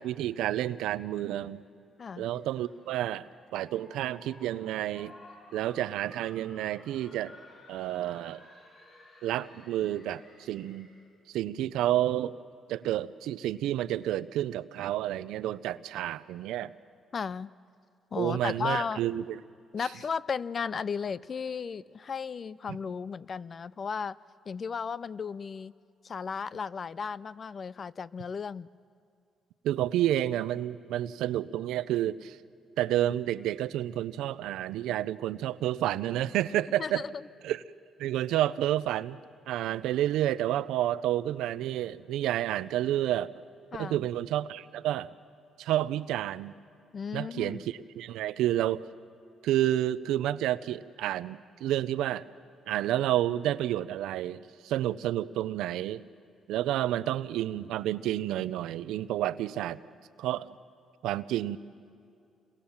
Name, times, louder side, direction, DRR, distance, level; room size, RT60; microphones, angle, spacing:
voice 1, 0.0-1.6 2.2-5.1 5.5-7.3 7.7-8.4 9.2-10.9 11.3-12.4 12.7-16.7 18.2-19.4 29.6-32.4 32.8-37.0 37.4-37.6 38.0-39.2 39.5-43.3 43.8-45.1 45.6-46.5 47.1-48.8 49.4-52.2 52.7-56.0 56.5-59.8 60.2-60.5 61.0-61.6, right 13 dB, 90° right, 14 dB, 0.6 m, -30 dB
sound 1, 2.3-11.1, left 2 dB, 65° left, 5.1 m, -55 dB
voice 2, 17.1-17.5 18.1-19.0 19.7-24.2 24.5-25.7 26.0-28.7 36.8-37.2 43.7-44.1 46.9-47.6, left 6 dB, 45° left, 18 dB, 0.5 m, -35 dB
28.5 x 23.5 x 7.3 m, 2.5 s
cardioid pair, 90°, 0 cm